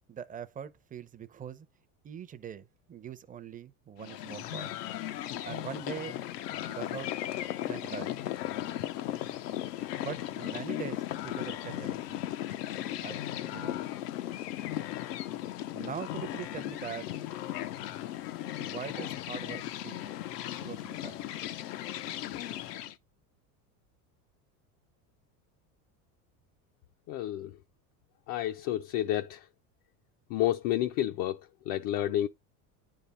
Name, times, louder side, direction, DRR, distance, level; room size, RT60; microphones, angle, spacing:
voice 1, 0.1-1.7 2.0-4.7 5.4-6.2 6.7-7.2 7.7-8.2 9.9-12.2 13.0-13.2 13.5-13.8 15.7-17.3 18.6-20.1 20.5-21.2, right 8 dB, 20° right, 0.5 m, -42 dB
sound 1, 4.0-22.9, left 13 dB, 85° left, 0.8 m, -36 dB
voice 2, 27.1-27.5 28.3-29.5 30.3-32.3, left 12 dB, 50° left, 0.5 m, -30 dB
9.7 x 3.6 x 4.1 m
supercardioid pair, 120°, 47 cm